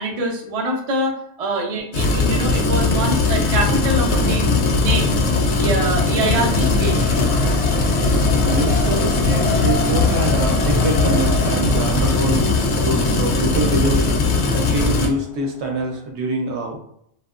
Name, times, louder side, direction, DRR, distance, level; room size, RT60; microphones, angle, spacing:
voice 1, 0.0-5.2 5.5-7.2, right 1 dB, 45° right, 0 dB, 0.5 m, -25 dB
sound 1, 1.9-15.1, left 3 dB, 65° left, 0.8 m, -19 dB
Race car auto racing, 4.1-16.0, left 2 dB, 10° left, 0.5 m, -33 dB
voice 2, 8.4-14.0 14.5-16.8, right 2 dB, 70° right, 2 dB, 0.9 m, -25 dB
2.7 x 2.4 x 2.4 m, 0.72 s
omnidirectional pair, 1.2 m